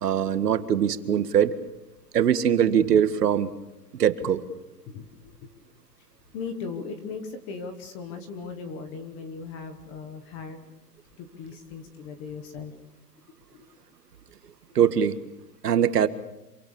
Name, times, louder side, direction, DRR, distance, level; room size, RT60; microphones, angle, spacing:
voice 1, 0.0-1.5 2.1-3.5 4.0-4.4 14.8-15.2 15.6-16.1, right 9 dB, 70° right, 12 dB, 1.9 m, -22 dB
voice 2, 4.9-5.5 6.3-10.6 11.2-12.7 13.5-13.7, left 5 dB, 10° left, 8 dB, 1.0 m, -38 dB
27.0 x 24.0 x 7.1 m, 0.94 s
hypercardioid pair, 175°, 49 cm